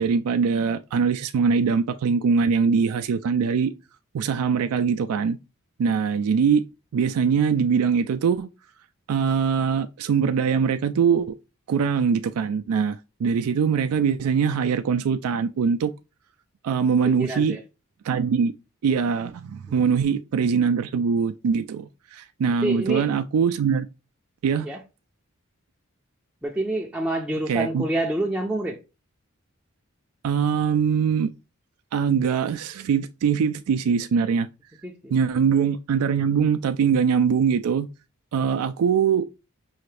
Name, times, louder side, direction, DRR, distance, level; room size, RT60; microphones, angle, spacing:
voice 1, 0.0-3.7 4.1-5.4 5.8-6.7 6.9-8.5 9.1-11.3 11.7-15.9 16.6-17.6 18.0-18.5 18.8-23.9 24.4-24.7 27.5-27.8 30.2-31.3 31.9-34.5 35.1-37.9 38.3-39.3, right 6 dB, 90° right, 0.3 m, -22 dB
voice 2, 17.0-17.6 19.7-19.8 22.6-23.1 24.6-24.8 26.4-28.8 34.8-35.1, right 1 dB, 5° right, 0.4 m, -27 dB
5.6 x 2.5 x 3.2 m
head